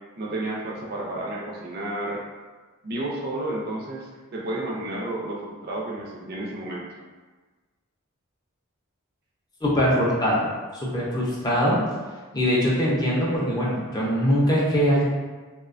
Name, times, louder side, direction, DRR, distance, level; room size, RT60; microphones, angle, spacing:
voice 1, 0.2-2.2 2.8-6.9, right 1 dB, 45° right, -2 dB, 0.4 m, -31 dB
voice 2, 9.6-10.4 10.8-11.8 12.3-15.0, equal, 20° left, -5 dB, 0.4 m, -22 dB
2.6 x 2.1 x 2.5 m, 1.3 s
head